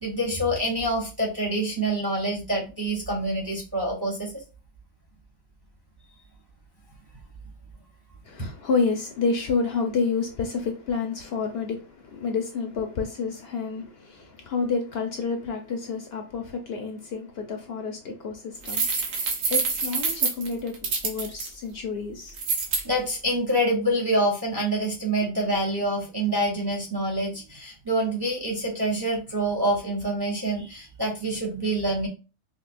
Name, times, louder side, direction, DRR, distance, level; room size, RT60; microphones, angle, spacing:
voice 1, 0.0-4.3 8.4-8.5 22.8-32.1, right 1 dB, 25° right, 0.7 m, -26 dB
voice 2, 8.2-22.3, left 4 dB, 60° left, 0.8 m, -29 dB
sound 1, 18.6-21.5 22.3-22.8, right 4 dB, 90° right, 1.2 m, -26 dB
5.1 x 2.1 x 2.5 m
omnidirectional pair, 1.3 m